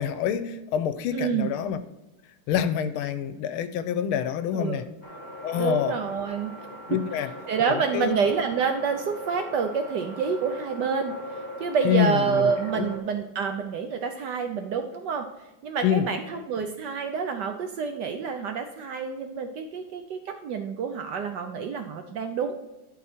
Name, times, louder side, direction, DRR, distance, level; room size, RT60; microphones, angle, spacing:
voice 1, 0.0-1.8 2.5-4.8 5.4-5.9 6.9-7.3 7.7-8.2 11.8-12.4 12.7-12.9 15.8-16.1, left 9 dB, 80° left, 12 dB, 1.5 m, -26 dB
voice 2, 1.1-1.5 4.5-4.8 5.5-6.5 6.9-7.0 7.5-11.1 11.6-15.3 15.6-22.5, right 6 dB, 70° right, 6 dB, 1.0 m, -28 dB
sound 1, 5.0-13.0, equal, 25° left, 1.4 m, -40 dB
11.5 x 4.3 x 4.4 m, 1.0 s
omnidirectional pair, 2.4 m